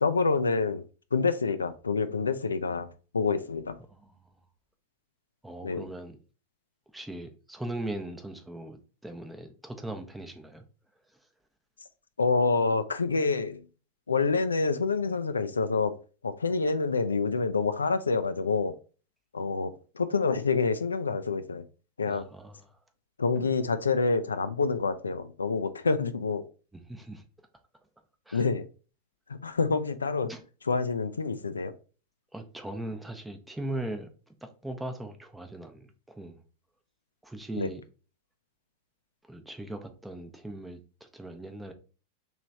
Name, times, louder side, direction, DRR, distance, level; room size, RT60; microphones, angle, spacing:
voice 1, 0.0-0.8 1.1-3.8 5.6-5.8 12.2-13.6 14.1-15.9 16.2-18.7 19.3-21.6 22.0-22.2 23.2-26.4 28.3-28.6 29.3-30.3 30.7-31.7 37.6-37.7, left 4 dB, 75° left, 0.3 m, -27 dB
voice 2, 3.9-4.4 5.4-6.2 6.9-10.6 22.1-22.8 23.3-23.5 26.7-27.2 28.3-28.4 30.3-30.4 32.3-34.1 34.4-36.4 37.2-37.8 39.2-41.7, right 1 dB, 5° right, 0.6 m, -39 dB
3.2 x 3.0 x 3.9 m
figure-of-eight pair, 90°, 0 cm